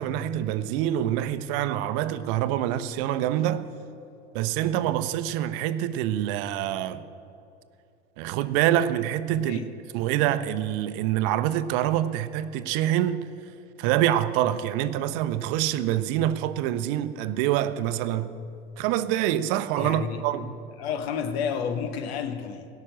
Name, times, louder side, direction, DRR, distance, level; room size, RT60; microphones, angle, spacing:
voice 1, 0.0-3.7 4.3-7.0 8.2-9.6 9.9-13.2 13.8-18.3 18.8-20.5, right 12 dB, 55° right, 0.7 m, -26 dB
voice 2, 9.3-9.7 19.8-22.7, left 7 dB, 65° left, 1.2 m, -31 dB
17.5 x 6.0 x 8.9 m
hypercardioid pair, 80°, 33 cm